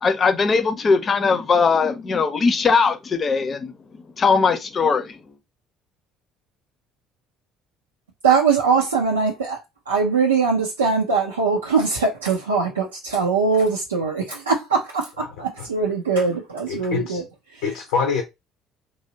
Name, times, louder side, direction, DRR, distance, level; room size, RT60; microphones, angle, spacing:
voice 1, 0.0-3.7 4.2-5.2, left 5 dB, 35° left, 0.7 m, -19 dB
voice 2, 8.2-9.6 9.9-17.2 17.5-17.6, right 5 dB, 85° right, 0.5 m, -21 dB
voice 3, 15.2-15.7 16.7-17.2 17.6-18.2, left 5 dB, 75° left, 0.6 m, -26 dB
3.0 x 2.7 x 2.7 m
figure-of-eight pair, 55°, 0 cm